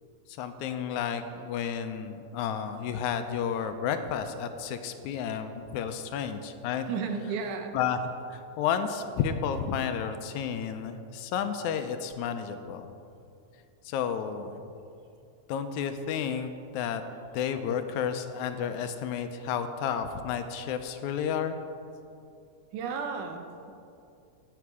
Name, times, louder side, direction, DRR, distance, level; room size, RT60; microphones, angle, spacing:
voice 1, 0.4-6.9 7.7-8.0 8.3-12.9 13.9-14.7 15.5-17.0 17.3-21.6, left 7 dB, 80° left, 8 dB, 2.0 m, -31 dB
voice 2, 6.9-7.8 22.7-23.7, right 5 dB, 85° right, 5 dB, 2.4 m, -33 dB
16.5 x 7.0 x 4.8 m, 2.6 s
omnidirectional pair, 3.5 m